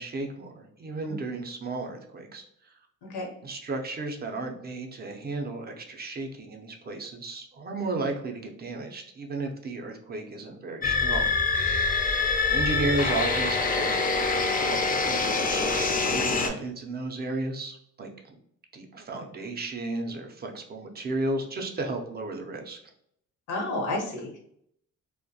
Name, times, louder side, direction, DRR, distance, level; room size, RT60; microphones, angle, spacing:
voice 1, 0.0-2.7 3.4-11.3 11.9-18.3 18.7-22.8, right 2 dB, 35° right, 3 dB, 0.5 m, -34 dB
sound 1, 10.8-16.5, left 4 dB, 30° left, 0.4 m, -25 dB
voice 2, 23.5-24.4, left 2 dB, 90° left, 1 dB, 0.8 m, -31 dB
2.2 x 2.1 x 2.6 m, 0.70 s
cardioid pair, 90°, 30 cm